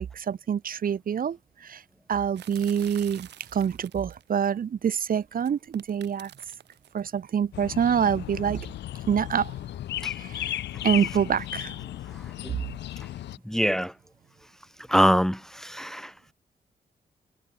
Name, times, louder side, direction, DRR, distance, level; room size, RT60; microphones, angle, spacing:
voice 1, 0.0-1.4 1.6-1.8 2.1-6.3 6.9-8.6 9.1-9.5 10.2-10.5 10.8-11.7, right 8 dB, 55° right, 0.7 m, -26 dB
sound 1, 2.3-4.4 5.3-7.0, right 11 dB, 85° right, 3.7 m, -48 dB
sound 2, 7.5-13.4, left 13 dB, 90° left, 1.0 m, -35 dB
voice 2, 13.5-13.9 14.9-16.1, equal, 5° left, 1.1 m, -23 dB
cardioid pair, 60°, 17 cm